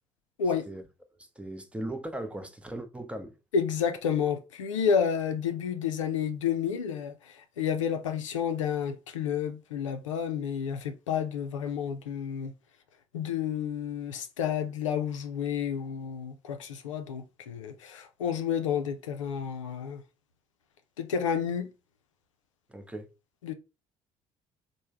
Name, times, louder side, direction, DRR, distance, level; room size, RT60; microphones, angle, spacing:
voice 1, 1.4-3.4 22.7-23.1, right 1 dB, 5° right, 0.6 m, -38 dB
voice 2, 3.5-12.5 13.1-20.0 21.0-21.7 23.4-23.5, left 7 dB, 90° left, 0.4 m, -30 dB
3.1 x 2.0 x 3.4 m
hypercardioid pair, 55°, 16 cm